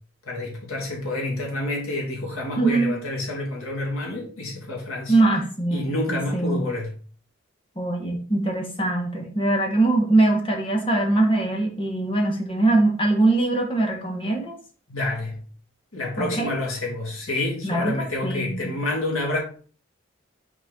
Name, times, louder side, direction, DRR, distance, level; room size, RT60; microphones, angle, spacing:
voice 1, 0.3-5.2 5.7-6.9 14.9-15.4 15.9-19.4, left 2 dB, 90° left, 2.7 m, -28 dB
voice 2, 2.6-2.9 5.1-6.6 7.8-14.5 16.2-16.5 17.6-18.7, right 2 dB, 25° left, 1.4 m, -22 dB
6.0 x 4.7 x 4.1 m
head